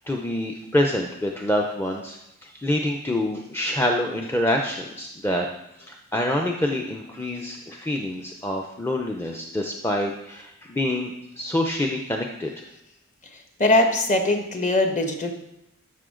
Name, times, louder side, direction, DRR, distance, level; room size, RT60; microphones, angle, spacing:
voice 1, 0.1-5.5 5.8-12.6, left 1 dB, 10° left, 1 dB, 0.6 m, -26 dB
voice 2, 13.3-15.3, left 2 dB, 35° left, 4 dB, 1.2 m, -21 dB
12.5 x 6.3 x 3.8 m, 0.84 s
head